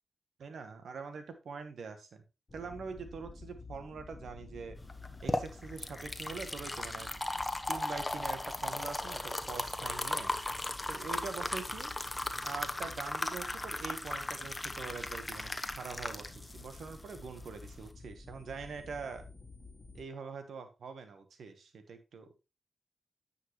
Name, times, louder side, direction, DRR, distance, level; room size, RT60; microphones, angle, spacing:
voice 1, 0.4-2.2 2.5-4.8 5.2-7.1 7.7-10.3 10.9-11.9 12.4-19.2 19.9-22.3, right 5 dB, 80° right, 8 dB, 1.2 m, -44 dB
sound 1, 2.5-20.0, left 3 dB, 45° left, 1.4 m, -51 dB
sound 2, 4.9-17.9, left 2 dB, 25° left, 0.9 m, -37 dB
9.4 x 5.5 x 3.1 m, 0.28 s
supercardioid pair, 40°, 0 cm